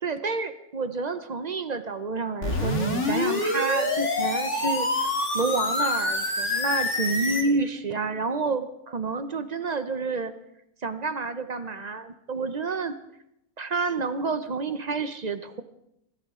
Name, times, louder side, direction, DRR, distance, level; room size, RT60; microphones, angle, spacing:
voice 1, 0.0-5.1 5.3-10.3 10.8-12.9 13.6-15.6, right 4 dB, 45° right, 11 dB, 0.5 m, -29 dB
sound 1, 2.4-7.4, left 2 dB, 45° left, 2.4 m, -26 dB
26.0 x 14.0 x 3.7 m, 0.82 s
omnidirectional pair, 1.7 m